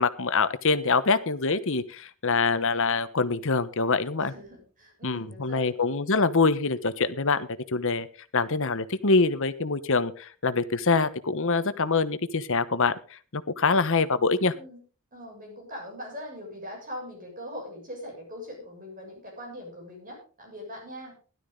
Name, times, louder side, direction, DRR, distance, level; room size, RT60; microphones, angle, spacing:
voice 1, 0.0-4.3 5.0-8.1 8.3-14.5, left 4 dB, 60° left, 13 dB, 1.1 m, -25 dB
voice 2, 4.2-5.8 14.4-14.8 15.1-21.2, equal, 40° right, 1 dB, 7.4 m, -41 dB
16.5 x 12.0 x 3.9 m, 0.37 s
head